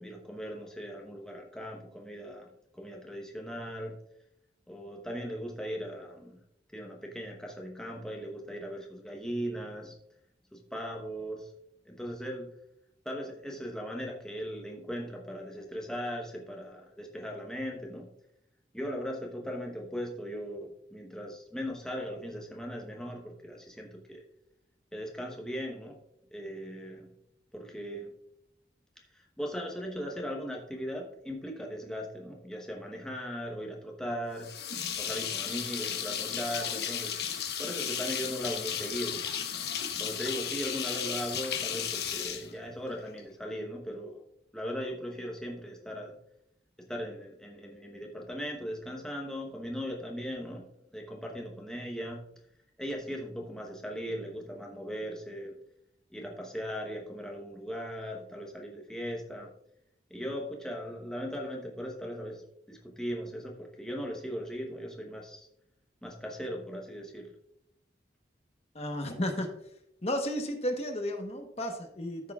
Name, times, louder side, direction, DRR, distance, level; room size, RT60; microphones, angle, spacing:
voice 1, 0.0-4.0 4.7-6.4 6.7-9.9 10.5-11.5 11.8-12.5 13.0-18.1 18.7-24.2 24.9-26.0 26.3-27.1 27.5-28.1 29.1-34.6 35.0-39.2 40.0-44.2 44.5-46.2 46.8-50.7 50.9-52.2 52.8-55.6 56.1-59.5 60.1-65.5 66.0-67.3, equal, 5° left, 0 dB, 0.9 m, -38 dB
sound 1, 34.4-43.2, left 8 dB, 70° left, 1.0 m, -34 dB
voice 2, 68.7-69.5 70.0-72.3, equal, 35° left, 4 dB, 1.0 m, -33 dB
14.0 x 6.5 x 2.4 m, 0.77 s
head